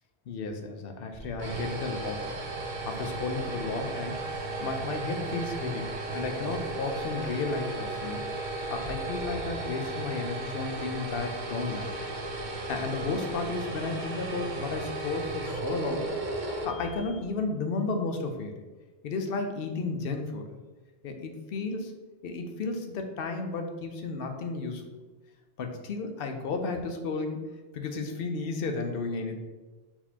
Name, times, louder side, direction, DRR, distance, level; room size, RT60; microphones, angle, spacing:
voice 1, 0.3-2.3 2.9-4.2 4.6-8.3 8.7-12.0 12.7-16.1 16.6-18.5 19.0-20.5 21.0-21.9 22.2-24.8 25.6-27.4 27.7-29.4, left 3 dB, 65° left, 5 dB, 0.7 m, -33 dB
sound 1, 1.1-17.3, right 2 dB, 55° right, 0.7 m, -35 dB
4.3 x 4.2 x 2.8 m, 1.2 s
omnidirectional pair, 1.1 m